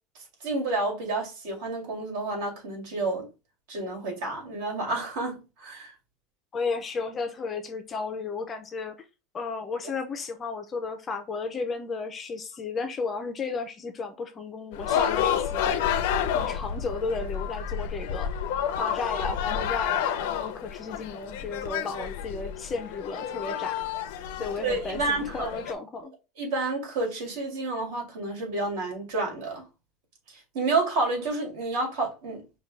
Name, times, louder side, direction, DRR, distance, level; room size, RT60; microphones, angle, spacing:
voice 1, 0.4-3.3 3.7-5.9 24.6-25.5 26.4-29.6 30.3-32.4, right 3 dB, 65° right, 2.2 m, -30 dB
voice 2, 6.5-9.0 9.3-15.9 16.3-18.4 18.8-23.8 24.4-26.1, left 4 dB, 20° left, 0.5 m, -34 dB
sound 1, 14.7-25.7, left 9 dB, 70° left, 0.5 m, -30 dB
5.1 x 2.3 x 3.2 m
supercardioid pair, 175°, 0 cm